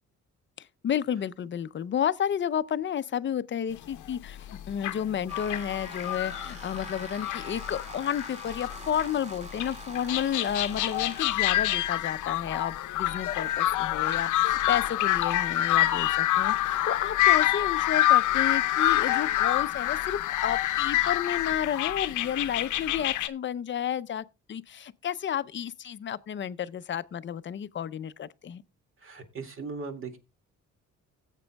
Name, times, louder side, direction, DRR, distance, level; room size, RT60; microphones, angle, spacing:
voice 1, 0.6-28.6, left 9 dB, 40° left, 0.6 m, -31 dB
sound 1, 3.9-4.0 4.2-9.1 9.6-23.3, left 14 dB, 80° left, 0.7 m, -27 dB
sound 2, 5.3-11.3, right 1 dB, 20° right, 2.2 m, -44 dB
voice 2, 29.0-30.2, right 4 dB, 45° right, 2.2 m, -38 dB
16.5 x 8.2 x 2.3 m
cardioid pair, 90°, 30 cm